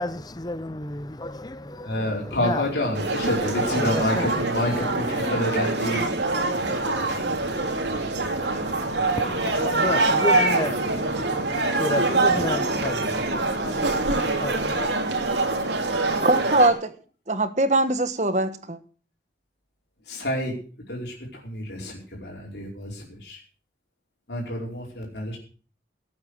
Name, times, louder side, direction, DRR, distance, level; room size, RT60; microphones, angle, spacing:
voice 1, 0.0-2.7 3.1-5.4 6.2-14.9, left 1 dB, 20° left, 0.7 m, -33 dB
voice 2, 1.8-6.1 20.1-20.5 20.9-23.4 24.3-25.4, left 1 dB, 75° left, 4.9 m, -28 dB
sound 1, 2.9-16.7, right 2 dB, 85° right, 3.0 m, -24 dB
voice 3, 16.2-16.9 17.3-18.8, right 2 dB, 40° right, 1.4 m, -21 dB
18.5 x 8.8 x 6.5 m
head